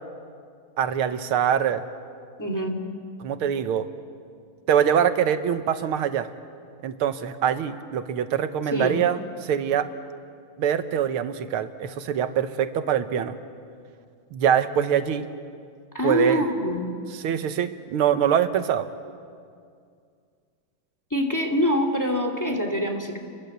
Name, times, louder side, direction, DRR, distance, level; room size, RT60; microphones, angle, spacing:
voice 1, 0.8-1.8 3.2-3.9 4.7-6.3 6.8-9.9 10.6-13.4 14.3-15.3 16.0-16.4 17.2-18.9, right 9 dB, 85° right, 10 dB, 1.9 m, -24 dB
voice 2, 2.4-2.8 8.7-9.0 15.9-16.9 21.1-23.2, equal, 10° left, 4 dB, 2.7 m, -24 dB
30.0 x 22.5 x 8.1 m, 2.3 s
omnidirectional pair, 2.3 m